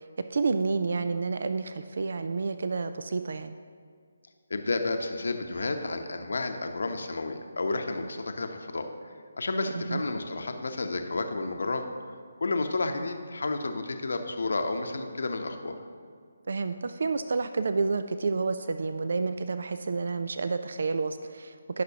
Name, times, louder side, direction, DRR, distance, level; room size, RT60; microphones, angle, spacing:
voice 1, 0.3-3.6 9.7-10.0 16.5-21.8, right 4 dB, 55° right, 10 dB, 0.3 m, -29 dB
voice 2, 4.5-8.9 9.4-11.9 12.4-15.7, left 3 dB, 60° left, 6 dB, 0.8 m, -31 dB
16.0 x 6.0 x 2.8 m, 2.1 s
figure-of-eight pair, 145°, 0 cm